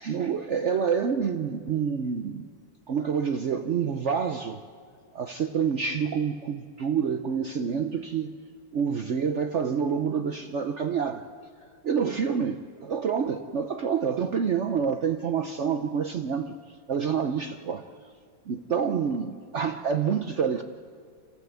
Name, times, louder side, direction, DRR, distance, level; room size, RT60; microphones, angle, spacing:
voice 1, 0.0-2.5 2.9-4.6 5.1-8.3 8.7-11.3 11.8-17.8 18.5-20.6, right 6 dB, 70° right, 7 dB, 0.6 m, -27 dB
28.5 x 15.0 x 8.0 m, 2.1 s
omnidirectional pair, 2.1 m